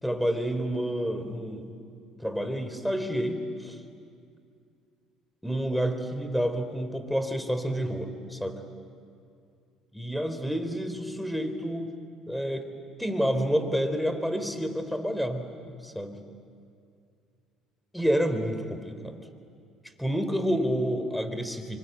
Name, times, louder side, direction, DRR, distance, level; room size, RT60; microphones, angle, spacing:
voice 1, 0.0-1.7 2.2-3.8 5.4-8.6 9.9-11.9 12.3-12.7 13.0-16.2 17.9-19.2 20.0-21.8, equal, ahead, 9 dB, 3.4 m, -29 dB
26.0 x 24.5 x 9.0 m, 2.4 s
supercardioid pair, 70°, 0 cm